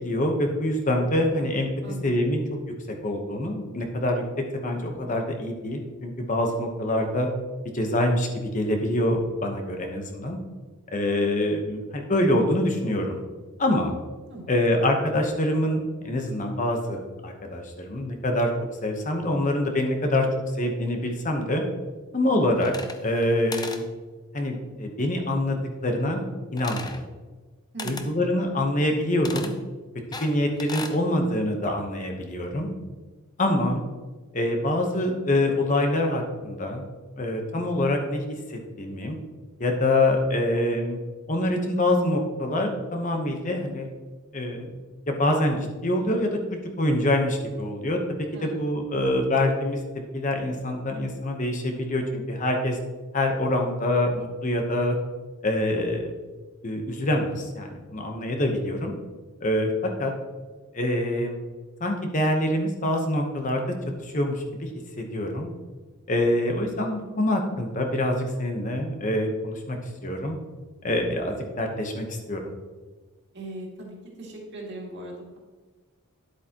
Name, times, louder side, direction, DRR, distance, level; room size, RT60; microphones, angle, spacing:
voice 1, 0.0-1.7 2.0-2.6 3.0-4.2 4.5-7.3 7.7-8.3 8.5-10.4 10.9-13.2 13.6-14.0 14.5-18.5 18.8-20.3 20.6-21.6 22.1-22.7 23.0-23.8 24.3-26.2 26.5-27.0 27.8-29.5 30.1-32.7 33.4-33.8 34.3-36.8 37.2-39.2 39.6-41.0 41.3-43.9 44.3-44.7 45.1-49.8 50.1-52.8 53.1-55.0 55.4-56.1 56.6-58.9 59.4-60.1 60.7-61.4 61.8-63.6 64.0-64.7 65.0-65.5 66.1-70.4 70.8-72.5, left 1 dB, 35° left, 3 dB, 1.0 m, -25 dB
voice 2, 1.8-2.4 14.3-14.7 27.7-28.2 48.3-48.7 73.3-75.4, right 1 dB, 50° right, -2 dB, 2.2 m, -39 dB
sound 1, 22.6-23.3 23.5-23.8 26.6-27.0 27.8-28.1 29.2-29.5 30.1-31.0, left 4 dB, 20° left, 0.5 m, -36 dB
10.5 x 8.1 x 2.9 m, 1.3 s
head